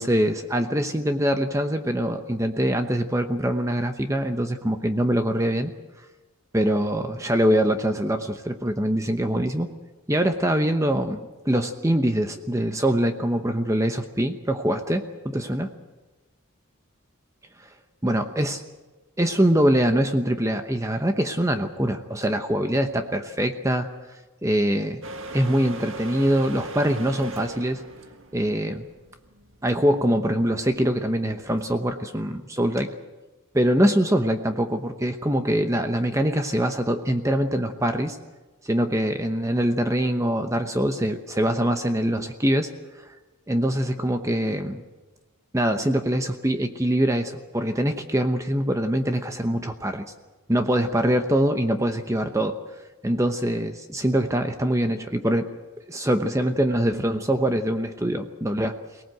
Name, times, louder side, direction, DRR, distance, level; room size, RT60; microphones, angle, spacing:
voice 1, 0.0-5.7 6.5-9.7 10.1-15.7 17.6-17.7 18.0-18.6 19.2-23.9 24.4-25.0 25.3-27.8 28.3-28.9 29.6-32.9 33.5-38.2 38.6-42.7 42.9-43.2 43.5-44.8 45.5-50.0 50.5-52.6 53.0-55.5 55.9-58.8, right 1 dB, 15° right, 7 dB, 0.9 m, -23 dB
sound 1, 25.0-31.6, right 2 dB, 65° right, 1.7 m, -39 dB
24.0 x 18.5 x 7.9 m, 1.2 s
head